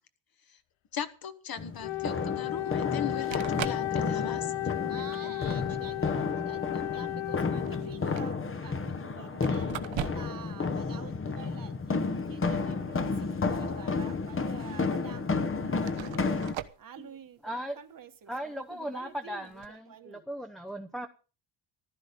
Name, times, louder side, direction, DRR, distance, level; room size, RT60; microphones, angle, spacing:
voice 1, 0.9-5.8, left 8 dB, 45° left, 1.4 m, -39 dB
sound 1, 1.6-16.5, left 4 dB, 25° left, 1.1 m, -32 dB
sound 2, 1.7-1.9 3.0-3.1 3.3-3.9 4.4-4.7 5.7-5.8 7.5-8.3 9.4-10.4 10.7-10.8 13.1-13.9 14.2-14.3 15.1-15.2 15.8-16.8 19.4-19.7, right 11 dB, 65° right, 1.1 m, -40 dB
Wind instrument woodwind instrument, 1.8-8.2, left 16 dB, 70° left, 0.8 m, -34 dB
voice 2, 4.9-20.2, right 8 dB, 45° right, 1.4 m, -49 dB
voice 3, 17.4-17.8 18.3-21.1, equal, ahead, 0.8 m, -38 dB
15.0 x 12.5 x 5.2 m
wide cardioid pair, 160°, 48 cm